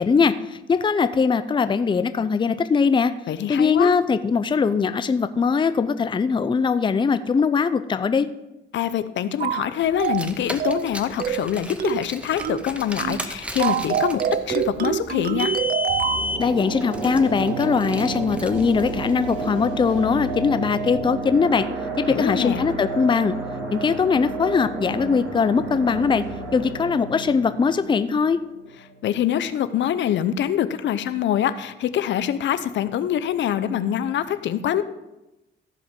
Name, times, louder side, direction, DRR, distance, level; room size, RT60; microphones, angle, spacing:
voice 1, 0.0-3.1 3.5-8.3 16.4-21.7 22.0-23.3 23.7-26.2 26.5-28.4, left 5 dB, 25° left, 12 dB, 0.5 m, -21 dB
voice 2, 3.3-3.9 8.7-15.5 22.1-22.6 29.0-34.8, left 10 dB, 65° left, 13 dB, 0.6 m, -24 dB
sound 1, 9.4-9.7 10.0-10.3 10.6-10.9 11.2-11.5 11.8-12.1 12.4-12.7 13.0-13.2 13.6-16.2, right 9 dB, 50° right, 0.4 m, -25 dB
Car, 10.0-19.5, left 1 dB, 5° right, 0.9 m, -33 dB
sound 2, 15.9-29.0 29.3-29.4, right 3 dB, 70° right, 3.4 m, -31 dB
14.5 x 5.1 x 5.2 m, 0.99 s
cardioid pair, 90°, 20 cm